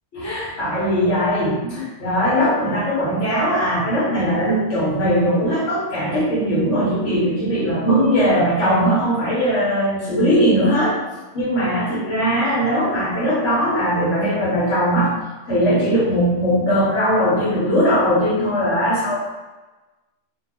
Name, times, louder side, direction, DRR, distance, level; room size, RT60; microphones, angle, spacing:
voice 1, 0.1-11.0 11.3-15.2 15.5-19.2, equal, 85° left, -7 dB, 1.5 m, -19 dB
2.8 x 2.3 x 3.5 m, 1.2 s
omnidirectional pair, 1.2 m